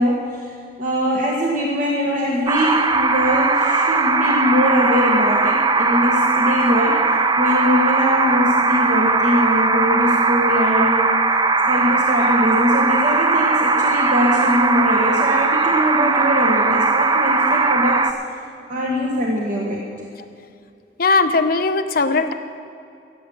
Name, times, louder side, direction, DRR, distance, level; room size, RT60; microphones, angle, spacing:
voice 1, 0.0-11.1 11.7-18.1 18.7-19.8, left 1 dB, 50° right, -3 dB, 1.4 m, -22 dB
sound 1, 2.5-18.1, right 3 dB, 25° right, 0.5 m, -18 dB
voice 2, 21.0-22.3, left 3 dB, 55° left, 7 dB, 0.8 m, -18 dB
15.5 x 7.8 x 7.1 m, 2.4 s
head